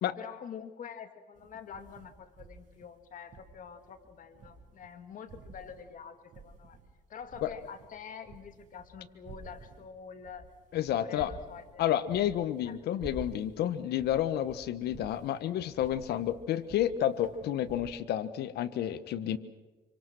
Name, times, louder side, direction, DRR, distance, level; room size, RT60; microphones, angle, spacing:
voice 1, 0.2-6.8 7.1-10.5 10.9-11.8 12.3-12.4 12.6-12.8, left 7 dB, 50° left, 8 dB, 2.3 m, -46 dB
sound 1, 1.4-5.0 5.3-6.9 7.2-17.8, right 3 dB, 50° right, 7.3 m, -51 dB
voice 2, 10.7-11.3 11.8-19.4, left 11 dB, 75° left, 12 dB, 1.4 m, -30 dB
26.5 x 25.0 x 6.2 m, 1.3 s
cardioid pair, 110°, 17 cm